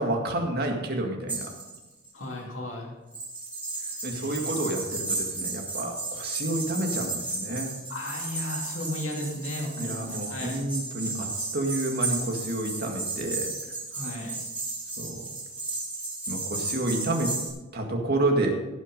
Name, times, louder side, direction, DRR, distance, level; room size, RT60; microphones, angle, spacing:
voice 1, 0.0-1.5 4.0-7.7 9.8-13.5 15.0-15.3 16.3-17.3 17.7-18.5, right 1 dB, 50° right, 2 dB, 1.9 m, -29 dB
sound 1, 1.3-2.1 3.1-17.5, right 3 dB, 5° right, 3.4 m, -34 dB
voice 2, 2.1-2.9 4.1-4.5 7.9-10.6 13.9-14.4, left 1 dB, 65° left, -2 dB, 2.6 m, -35 dB
17.0 x 6.2 x 5.3 m, 1.1 s
head